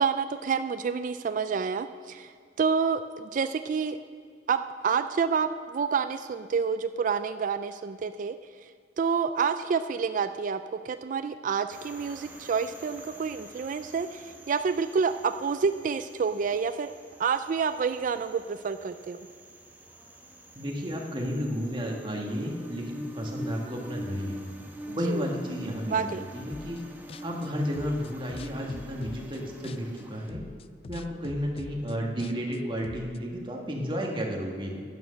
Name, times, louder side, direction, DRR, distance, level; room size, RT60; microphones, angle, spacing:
voice 1, 0.0-4.0 4.5-8.4 9.0-10.6 10.8-16.9 17.2-19.2 24.9-25.3 25.9-26.3, right 6 dB, 45° right, 10 dB, 0.3 m, -28 dB
sound 1, 11.7-30.3, equal, 10° right, 1.0 m, -45 dB
voice 2, 20.5-24.6 24.9-26.8 27.2-30.4 30.9-34.8, equal, 30° right, 0 dB, 1.6 m, -32 dB
sound 2, 26.5-26.8 27.1-30.0 30.3-33.2, left 4 dB, 35° left, 0.3 m, -44 dB
10.5 x 9.1 x 6.4 m, 2.1 s
head